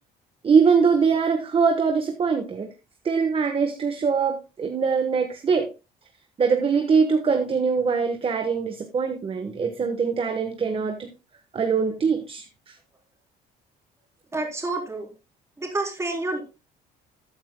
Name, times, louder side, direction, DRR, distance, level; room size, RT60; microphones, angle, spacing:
voice 1, 0.4-2.7 3.0-5.7 6.4-11.1 11.5-12.8, right 5 dB, 35° right, 5 dB, 1.3 m, -22 dB
voice 2, 14.3-15.1 15.6-16.4, right 2 dB, 15° right, 1 dB, 3.7 m, -28 dB
14.0 x 8.9 x 2.2 m, 0.29 s
cardioid pair, 110°, 17 cm